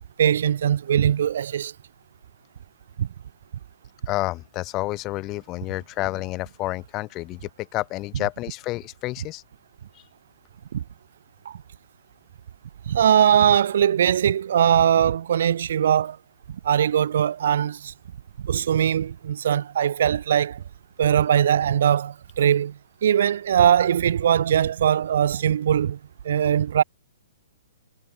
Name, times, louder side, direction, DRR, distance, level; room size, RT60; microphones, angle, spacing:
voice 1, 0.2-1.7 3.0-3.1 8.1-8.2 10.7-10.8 11.5-11.6 12.9-16.2 16.5-17.9 18.4-20.6 21.0-26.0 26.2-26.8, right 9 dB, 55° right, 0.5 m, -21 dB
voice 2, 4.1-9.4, left 19 dB, 30° left, 0.4 m, -30 dB
figure-of-eight pair, 115°, 0 cm